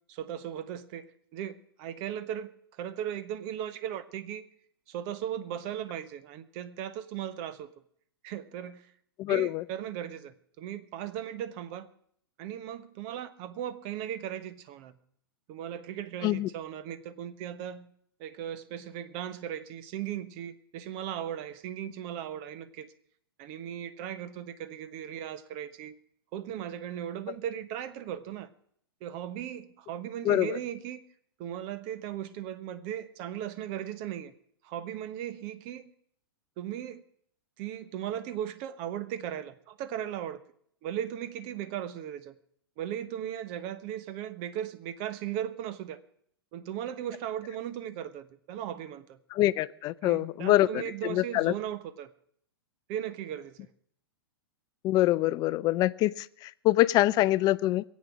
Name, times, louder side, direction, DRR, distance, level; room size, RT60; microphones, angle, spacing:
voice 1, 0.1-2.5 2.8-4.4 4.9-7.7 8.2-8.9 9.3-11.9 12.4-15.0 15.5-17.9 18.2-22.9 23.4-25.9 26.3-28.5 29.0-31.0 31.4-34.3 34.6-35.9 36.6-37.0 37.6-40.4 40.8-42.3 42.8-46.0 46.5-49.2 50.0-52.1 52.9-53.7, right 10 dB, 40° right, 1.2 m, -37 dB
voice 2, 9.2-9.6 16.2-16.5 30.2-30.6 49.3-50.8 51.1-51.5 54.8-57.8, left 15 dB, 30° left, 0.5 m, -25 dB
21.5 x 8.5 x 6.1 m
hypercardioid pair, 110°, 13 cm